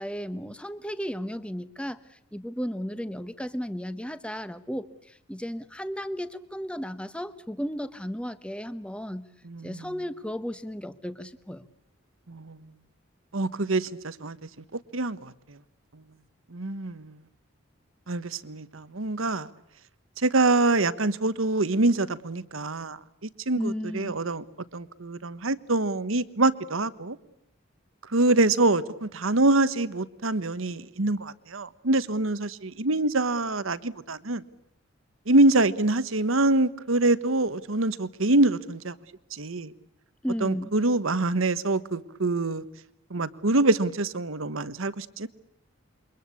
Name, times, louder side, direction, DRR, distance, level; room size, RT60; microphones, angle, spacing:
voice 1, 0.0-9.3 9.6-11.7 23.6-24.2 40.2-40.7, equal, 5° left, 1.0 m, -34 dB
voice 2, 9.4-9.9 12.3-12.6 13.3-14.4 14.9-15.6 16.5-17.2 18.1-19.5 20.2-24.4 24.7-27.2 28.1-34.4 35.3-38.9 39.3-39.7 40.4-42.6 43.1-45.3, right 2 dB, 80° right, 1.3 m, -25 dB
28.0 x 24.0 x 8.5 m
head